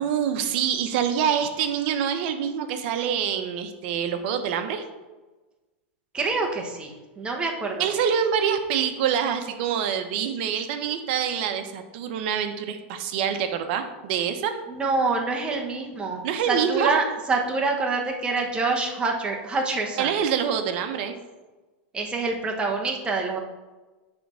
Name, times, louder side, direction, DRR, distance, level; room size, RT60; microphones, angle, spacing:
voice 1, 0.0-4.8 7.8-14.5 16.2-17.0 20.0-21.1, right 8 dB, 55° right, 7 dB, 0.9 m, -26 dB
voice 2, 6.1-8.1 14.7-20.1 21.9-23.4, right 3 dB, 15° right, 1 dB, 1.2 m, -26 dB
8.5 x 3.5 x 6.4 m, 1.2 s
supercardioid pair, 140°, 7 cm